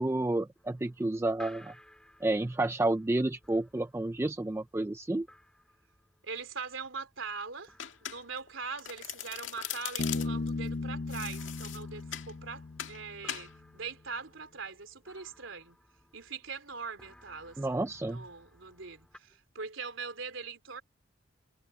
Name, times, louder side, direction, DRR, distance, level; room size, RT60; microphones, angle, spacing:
voice 1, 0.0-1.7 2.2-5.3 17.6-18.2, right 2 dB, 15° right, 0.3 m, -30 dB
sound 1, 0.5-19.2, left 1 dB, 5° left, 2.1 m, -59 dB
voice 2, 6.2-7.7 8.0-15.8 16.1-17.6 18.0-20.8, right 5 dB, 90° right, 3.3 m, -42 dB
Domestic sounds home sounds, 7.8-8.5 8.8-10.5 11.1-12.3 12.8-13.0 13.3-13.5, left 11 dB, 80° left, 2.0 m, -40 dB
Bass guitar, 10.0-13.5, left 3 dB, 55° left, 0.6 m, -36 dB
head